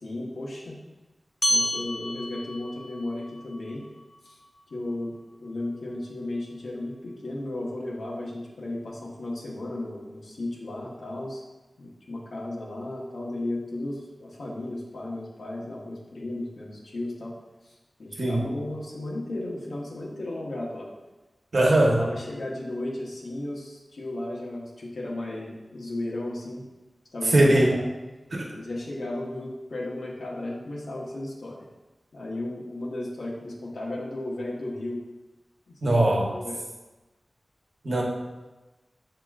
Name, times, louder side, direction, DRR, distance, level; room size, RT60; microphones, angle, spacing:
voice 1, 0.0-0.8 1.5-3.8 4.2-4.4 4.7-11.4 11.8-17.3 17.6-20.9 21.5-26.6 27.1-27.8 28.5-31.7 32.1-35.0 35.7-35.8 36.1-36.6, left 1 dB, 80° left, -4 dB, 1.0 m, -35 dB
sound 1, 1.4-6.2, equal, 25° left, 0.5 m, -32 dB
voice 2, 21.5-22.0 27.3-27.8 28.3-28.5 35.8-36.3 37.8-38.0, right 1 dB, 65° right, -2 dB, 1.0 m, -20 dB
7.2 x 2.9 x 2.3 m, 1.1 s
wide cardioid pair, 90°, 0 cm